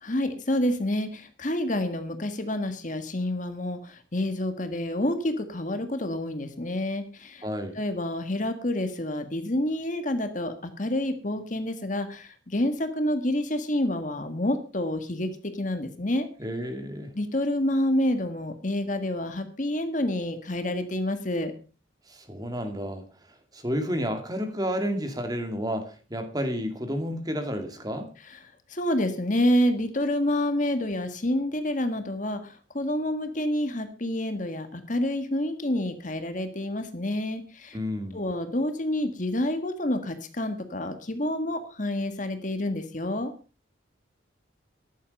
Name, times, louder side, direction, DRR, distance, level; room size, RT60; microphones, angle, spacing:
voice 1, 0.0-7.4 7.7-16.3 17.1-21.5 28.2-28.4 28.7-37.8 38.1-43.3, left 1 dB, 40° left, 8 dB, 1.7 m, -28 dB
voice 2, 7.4-7.8 16.4-17.1 22.1-23.0 23.5-28.1 37.7-38.2, equal, 20° right, 6 dB, 2.3 m, -31 dB
14.0 x 11.0 x 5.3 m, 0.35 s
head